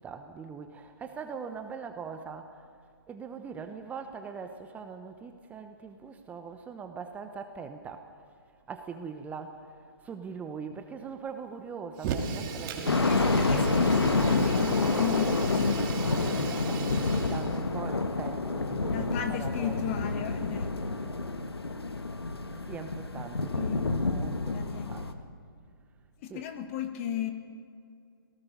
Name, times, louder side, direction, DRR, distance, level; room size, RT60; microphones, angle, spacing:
voice 1, 0.0-2.6 3.1-8.1 8.7-13.5 16.7-20.0 22.7-25.1 26.3-26.5, right 5 dB, 10° right, 7 dB, 0.9 m, -42 dB
Fire, 12.0-17.6, right 5 dB, 30° right, 2.6 m, -37 dB
sound 1, 12.9-25.1, left 3 dB, 85° left, 1.5 m, -28 dB
voice 2, 13.0-16.5 18.9-21.4 23.5-23.9 24.5-25.1 26.2-27.3, left 9 dB, 35° left, 7 dB, 1.9 m, -36 dB
27.5 x 18.0 x 5.4 m, 2.3 s
figure-of-eight pair, 135°, 13 cm